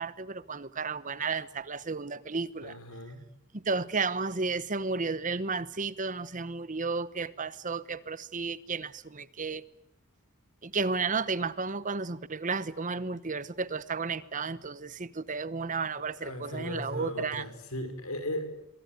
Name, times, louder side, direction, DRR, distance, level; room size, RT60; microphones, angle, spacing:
voice 1, 0.0-2.8 3.5-9.6 10.6-17.4, right 4 dB, 35° right, 1.0 m, -33 dB
voice 2, 2.6-3.2 16.2-18.5, left 1 dB, 85° left, 5.6 m, -37 dB
27.0 x 23.0 x 9.5 m
head